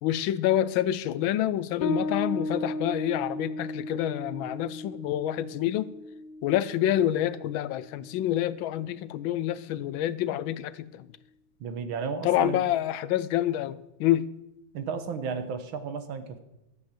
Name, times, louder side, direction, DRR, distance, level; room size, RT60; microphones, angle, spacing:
voice 1, 0.0-5.9 6.4-11.0 12.2-14.3, left 12 dB, 85° left, 1.4 m, -27 dB
Bass guitar, 1.8-9.0, left 1 dB, 35° left, 0.9 m, -36 dB
voice 2, 11.6-12.6 14.7-16.4, right 5 dB, 90° right, 1.9 m, -33 dB
13.0 x 7.8 x 7.5 m
omnidirectional pair, 2.1 m